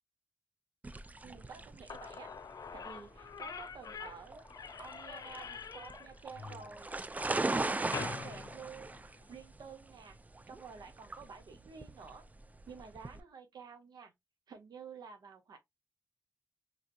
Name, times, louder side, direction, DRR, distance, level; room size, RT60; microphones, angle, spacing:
sound 1, 0.8-13.2, right 2 dB, 25° right, 0.3 m, -40 dB
voice 1, 1.2-2.3 2.7-4.5 4.8-9.0 9.3-10.2 10.5-12.3 12.7-14.1 14.5-15.6, right 5 dB, 85° right, 0.6 m, -51 dB
Slam / Squeak, 1.6-1.7 1.9-9.4, left 6 dB, 65° left, 0.4 m, -46 dB
3.3 x 2.5 x 2.5 m
cardioid pair, 50°, 7 cm